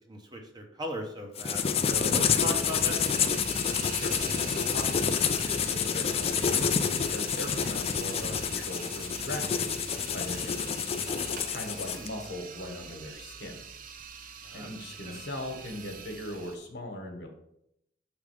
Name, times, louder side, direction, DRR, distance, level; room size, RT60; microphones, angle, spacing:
voice 1, 0.0-3.4 11.9-12.1 14.4-14.7 15.0-15.2, equal, 25° right, 2 dB, 0.9 m, -38 dB
sound 1, 1.4-12.1, left 7 dB, 35° left, 0.4 m, -28 dB
sound 2, 1.8-16.6, right 6 dB, 50° right, 0.6 m, -43 dB
voice 2, 4.4-10.9 11.5-13.6 14.5-17.3, left 1 dB, 60° left, 3 dB, 1.3 m, -40 dB
6.4 x 3.5 x 5.0 m, 0.77 s
head